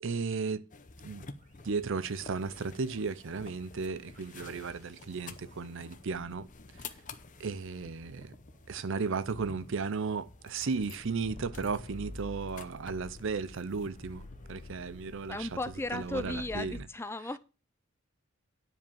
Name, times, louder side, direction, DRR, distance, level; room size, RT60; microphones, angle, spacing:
voice 1, 0.0-0.7 1.0-1.2 1.6-6.5 7.4-8.3 8.7-15.5 15.9-16.9, right 4 dB, 60° right, 0.6 m, -35 dB
sound 1, 0.7-16.8, left 3 dB, 35° left, 0.8 m, -48 dB
sound 2, 1.4-16.3, right 1 dB, 35° right, 2.2 m, -64 dB
voice 2, 15.3-17.4, left 2 dB, 10° left, 0.4 m, -35 dB
9.9 x 5.2 x 7.0 m
head